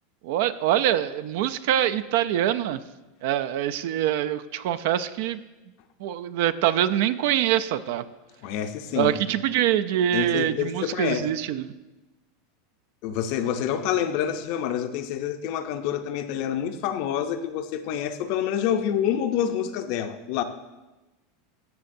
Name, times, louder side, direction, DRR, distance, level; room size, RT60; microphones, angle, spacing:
voice 1, 0.2-2.8 3.2-5.4 6.0-8.0 8.9-11.7, right 11 dB, 65° right, 13 dB, 0.4 m, -24 dB
voice 2, 8.4-9.2 10.1-11.2 13.0-20.4, left 9 dB, 55° left, 8 dB, 0.6 m, -27 dB
14.0 x 6.6 x 2.6 m, 1.1 s
supercardioid pair, 150°, 0 cm